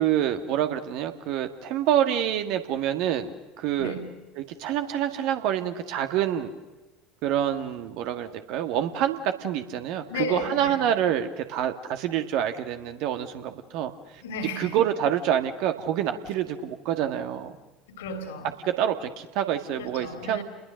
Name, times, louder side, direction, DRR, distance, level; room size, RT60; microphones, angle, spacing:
voice 1, 0.0-3.3 3.6-3.9 4.4-6.5 7.2-13.9 14.6-17.6 18.6-20.4, right 10 dB, 55° right, 1.7 m, -27 dB
voice 2, 3.8-4.1 10.1-10.9 14.2-14.8 17.9-18.5 19.8-20.4, left 2 dB, 70° left, 3.6 m, -34 dB
30.0 x 21.0 x 6.4 m
figure-of-eight pair, 70°, 0 cm